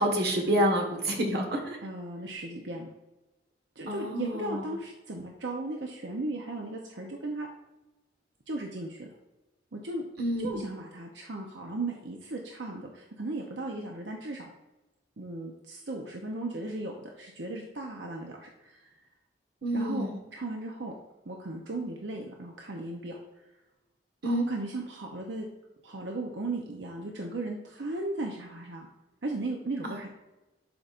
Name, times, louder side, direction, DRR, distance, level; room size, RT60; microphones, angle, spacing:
voice 1, 0.0-1.8 3.9-4.6 10.2-10.5 19.6-20.2 24.2-24.5 29.8-29.9, equal, 65° right, 2 dB, 1.5 m, -28 dB
voice 2, 1.8-2.9 3.8-7.5 8.5-9.1 9.7-10.0 10.4-14.5 15.2-18.9 19.7-20.1 20.3-20.9 21.2-23.2 24.2-25.5 25.8-28.9 29.2-30.2, right 2 dB, 85° right, 0 dB, 0.8 m, -36 dB
11.5 x 5.2 x 2.6 m, 1.0 s
head